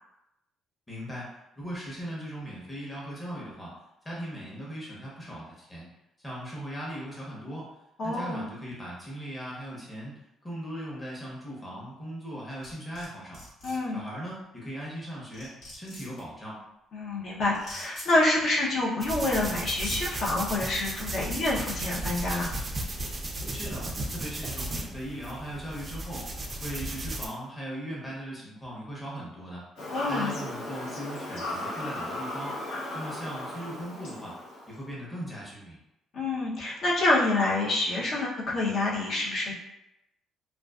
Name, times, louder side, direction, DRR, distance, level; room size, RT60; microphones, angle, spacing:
voice 1, 0.9-1.3 1.6-3.7 4.0-5.9 6.2-7.7 8.0-13.4 13.9-16.6 23.5-26.3 26.6-29.6 30.1-32.6 32.9-34.3 34.7-35.8, equal, 10° left, -5 dB, 0.8 m, -38 dB
voice 2, 8.0-8.5 13.6-14.0 16.9-22.5 29.9-30.3 36.1-39.5, left 2 dB, 50° left, -4 dB, 0.6 m, -27 dB
sound 1, 12.6-13.1 13.3-13.8 15.0-15.1 15.3-16.2 17.5-18.1 19.2-19.3 19.7-20.0, left 1 dB, 65° left, 1.2 m, -41 dB
sound 2, 19.0-27.3, right 1 dB, 30° right, 0.3 m, -35 dB
Fowl / Bird vocalization bird call bird song, 29.8-34.8, left 1 dB, 85° left, 0.9 m, -36 dB
2.4 x 2.3 x 2.3 m, 0.89 s
cardioid pair, 115°, 0 cm